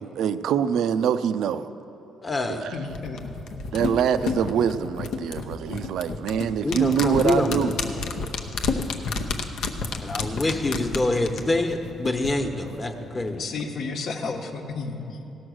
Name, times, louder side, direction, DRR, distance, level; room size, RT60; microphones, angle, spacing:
voice 1, 0.0-1.7 2.5-2.7 3.7-7.7, right 8 dB, 80° right, 12 dB, 0.4 m, -24 dB
voice 2, 2.2-2.7 6.6-7.7 10.0-13.4, left 2 dB, 25° left, 5 dB, 1.1 m, -26 dB
voice 3, 2.7-3.2 13.4-15.2, left 4 dB, 65° left, 4 dB, 1.1 m, -32 dB
sound 1, 2.9-12.3 12.6-12.7, left 4 dB, 80° left, 0.8 m, -30 dB
16.5 x 6.2 x 6.3 m, 3.0 s
cardioid pair, 90°, 0 cm